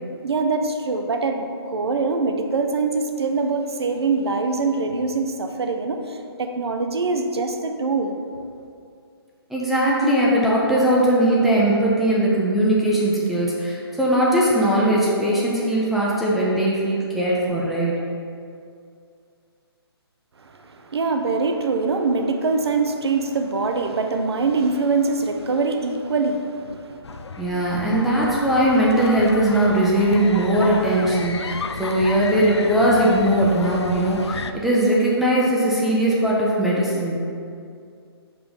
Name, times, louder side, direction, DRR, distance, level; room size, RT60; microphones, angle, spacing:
voice 1, 0.2-8.2 20.4-27.0, right 4 dB, 75° right, 4 dB, 0.7 m, -23 dB
voice 2, 9.5-17.9 27.4-37.2, right 1 dB, ahead, -7 dB, 0.6 m, -20 dB
sound 1, 27.0-34.5, left 4 dB, 90° left, 0.4 m, -33 dB
5.2 x 3.4 x 5.4 m, 2.4 s
figure-of-eight pair, 140°, 14 cm